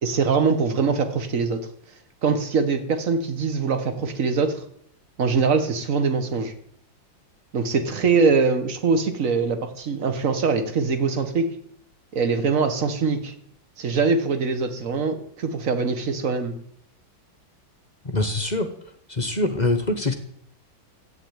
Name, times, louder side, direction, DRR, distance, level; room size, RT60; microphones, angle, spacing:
voice 1, 0.0-1.7 2.2-4.6 5.2-6.5 7.5-11.5 12.1-13.3 13.8-16.5, right 4 dB, 45° right, 8 dB, 1.7 m, -23 dB
voice 2, 18.0-18.7 19.1-20.1, left 2 dB, 30° left, 7 dB, 0.9 m, -24 dB
13.0 x 9.3 x 8.9 m, 0.70 s
omnidirectional pair, 2.2 m